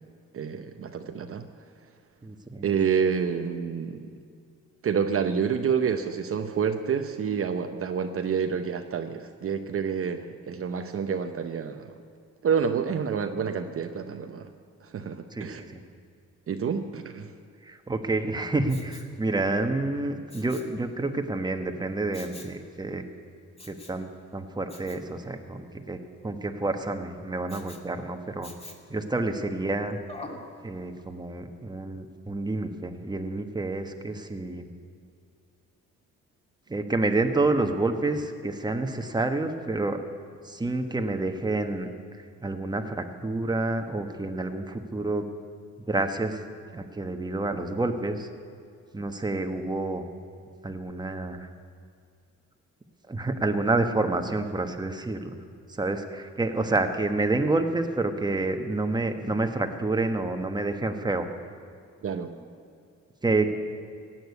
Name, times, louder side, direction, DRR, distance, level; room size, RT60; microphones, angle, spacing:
voice 1, 0.3-1.5 2.6-4.1 4.8-12.0 12.4-14.5 14.8-15.6 16.5-17.3 62.0-62.4, right 6 dB, 45° right, 6 dB, 0.9 m, -28 dB
voice 2, 2.2-2.6 15.3-15.8 17.6-23.0 23.7-28.5 28.9-30.0 30.6-34.7 36.7-40.0 40.4-41.9 42.2-45.3 45.8-46.4 46.7-48.3 48.9-50.1 50.6-51.5 53.1-55.4 55.7-61.3 63.2-63.5, right 2 dB, 15° right, 6 dB, 1.3 m, -28 dB
Respiratory sounds, 18.7-19.2 20.3-20.8 22.1-22.6 23.6-24.0 24.7-25.0 27.5-27.9 28.4-28.9 30.1-30.5 31.0-31.1, left 2 dB, 20° left, 2.0 m, -44 dB
16.5 x 9.1 x 8.3 m, 2.3 s
cardioid pair, 90°, 30 cm